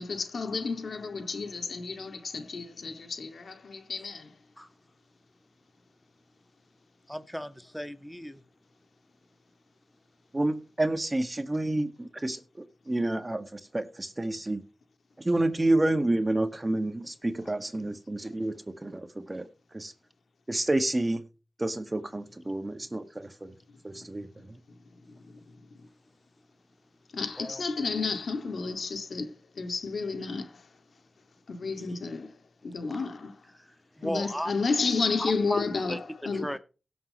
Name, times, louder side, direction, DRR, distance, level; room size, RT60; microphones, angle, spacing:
voice 1, 0.0-4.3 25.1-25.3 27.1-30.5 31.5-32.3 32.6-33.3 34.0-36.5, left 4 dB, 75° left, 2.2 m, -31 dB
voice 2, 7.1-8.4 27.4-27.6 33.5-33.7 34.0-34.5 35.2-35.6 35.9-36.6, equal, 5° left, 1.6 m, -35 dB
voice 3, 10.3-12.4 12.9-14.6 15.2-19.5 19.7-19.9 20.5-21.2 21.6-23.5 23.8-24.6, right 1 dB, 30° right, 1.8 m, -29 dB
17.5 x 7.8 x 3.1 m
cardioid pair, 50°, 0 cm